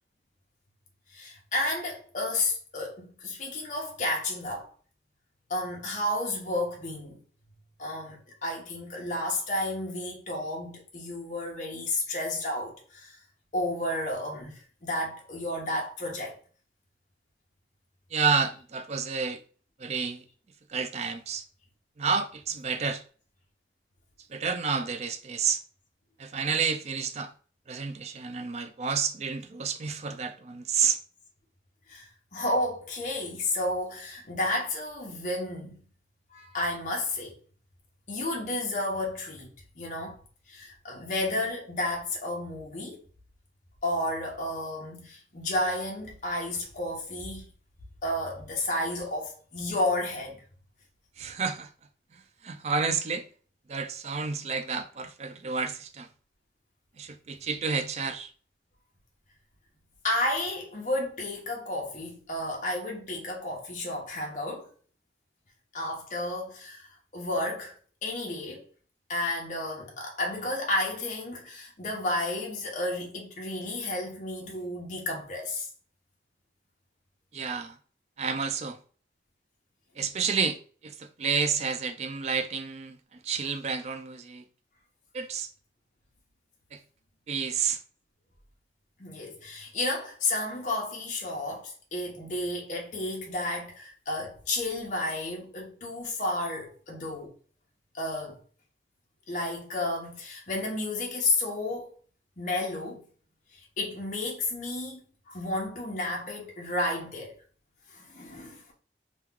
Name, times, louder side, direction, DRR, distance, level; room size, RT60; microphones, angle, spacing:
voice 1, 1.1-4.7 5.5-7.2 7.8-13.2 13.5-16.4 31.9-32.1 32.3-35.8 36.3-37.4 38.1-39.5 39.8-40.2 40.5-43.0 43.8-47.5 48.0-50.4 60.0-64.7 65.7-68.7 69.1-75.7 89.0-97.3 97.9-98.4 99.3-101.9 102.4-103.0 103.5-105.0 105.3-107.4 107.9-108.7, left 1 dB, 45° left, 0.8 m, -32 dB
voice 2, 18.1-19.4 19.8-20.2 20.7-21.4 22.0-23.0 24.3-25.6 26.2-27.3 27.7-31.0 51.2-51.7 52.1-53.3 53.7-56.1 57.0-58.3 77.3-77.8 78.2-78.8 80.0-84.4 85.1-85.5 86.7-86.8 87.3-87.8, right 5 dB, 40° right, 0.3 m, -30 dB
3.0 x 2.2 x 3.6 m
head